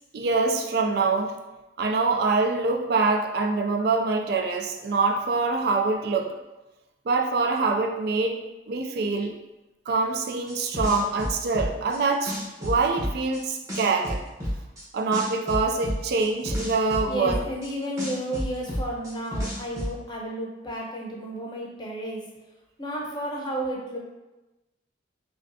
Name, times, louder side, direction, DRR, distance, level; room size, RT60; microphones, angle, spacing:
voice 1, 0.1-1.4 1.8-6.4 7.1-8.4 8.7-9.3 9.9-14.2 14.9-17.4, right 3 dB, 55° right, 3 dB, 0.3 m, -25 dB
sound 1, 10.5-12.0 12.3-13.4 13.7-14.8 15.1-17.7 18.0-19.9, equal, 15° right, 1.0 m, -30 dB
voice 2, 17.1-22.2 22.8-24.0, equal, 25° left, -2 dB, 0.6 m, -32 dB
4.8 x 2.3 x 2.6 m, 1.1 s
head